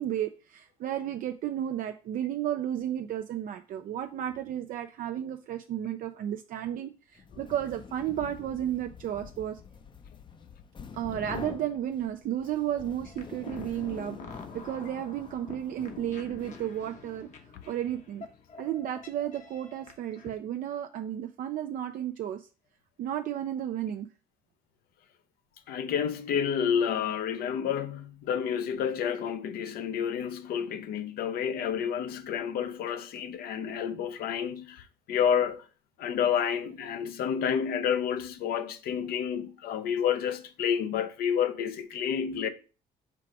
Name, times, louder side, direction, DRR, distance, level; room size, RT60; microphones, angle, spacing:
voice 1, 0.0-9.6 10.9-17.3 17.7-18.3 18.6-22.5 23.0-24.1, right 11 dB, 60° right, 0.4 m, -33 dB
sound 1, 7.2-17.1, left 6 dB, 30° left, 0.5 m, -47 dB
sound 2, 13.1-20.3, left 6 dB, 50° left, 0.9 m, -47 dB
voice 2, 25.7-35.7 36.0-42.5, left 8 dB, 70° left, 0.6 m, -29 dB
4.6 x 2.5 x 4.6 m
supercardioid pair, 80°, 16 cm